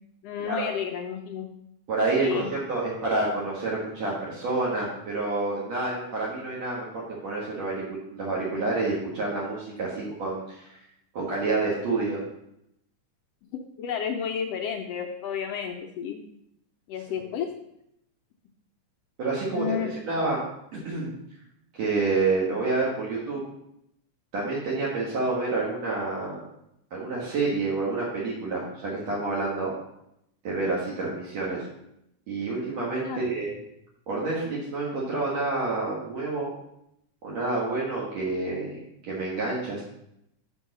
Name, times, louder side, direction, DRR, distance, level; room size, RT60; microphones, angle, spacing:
voice 1, 0.2-1.5 2.2-2.5 13.5-16.2 16.9-17.5 19.5-19.9 33.0-33.3, left 8 dB, 75° left, 3 dB, 1.4 m, -31 dB
voice 2, 1.9-10.7 11.1-12.2 19.2-20.4 20.7-21.1 21.8-23.4 24.3-26.4 26.9-29.7 30.4-31.6 32.3-33.5 34.1-36.5 37.2-38.8 39.0-39.8, right 3 dB, 60° right, -6 dB, 2.7 m, -28 dB
7.0 x 5.4 x 6.5 m, 0.80 s
omnidirectional pair, 3.5 m